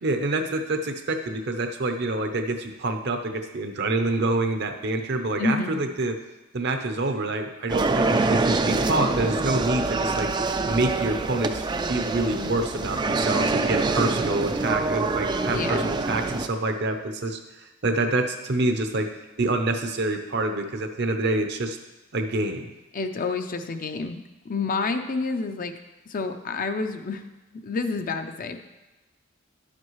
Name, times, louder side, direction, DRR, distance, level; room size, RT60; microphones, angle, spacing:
voice 1, 0.0-6.1 6.5-10.3 10.7-11.6 11.9-19.1 19.4-21.8 22.1-22.7, right 2 dB, 55° right, 6 dB, 0.7 m, -27 dB
voice 2, 5.4-5.7 15.5-15.9 22.9-25.7 26.1-27.2 27.6-28.6, left 3 dB, 45° left, 7 dB, 0.5 m, -29 dB
sound 1, 7.7-16.5, right 3 dB, 20° right, 0.3 m, -25 dB
10.5 x 7.4 x 3.1 m, 1.1 s
head